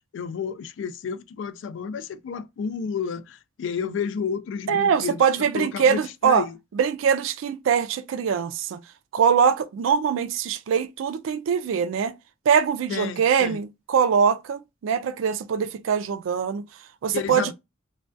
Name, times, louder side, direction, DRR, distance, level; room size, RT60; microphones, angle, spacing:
voice 1, 0.1-5.2 5.5-6.6 12.9-13.6 17.1-17.5, left 6 dB, 70° left, 0.3 m, -31 dB
voice 2, 4.7-6.4 6.8-8.8 9.1-12.1 12.5-16.7 17.0-17.5, right 7 dB, 85° right, 0.3 m, -23 dB
2.2 x 2.2 x 2.5 m
head